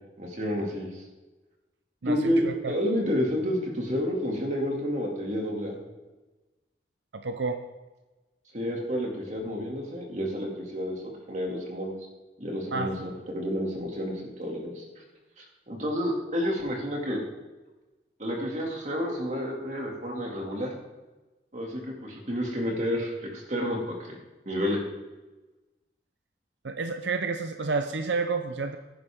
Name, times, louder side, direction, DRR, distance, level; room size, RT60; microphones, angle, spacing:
voice 1, 0.2-1.0 2.1-5.8 8.5-11.0 11.3-11.9 12.4-14.9 15.4-17.2 18.2-20.7 21.5-24.2 24.5-24.8, equal, 45° right, 0 dB, 2.5 m, -30 dB
voice 2, 7.1-7.6 12.7-12.9 26.6-28.8, right 4 dB, 85° right, 7 dB, 0.7 m, -29 dB
15.0 x 10.5 x 3.7 m, 1.2 s
head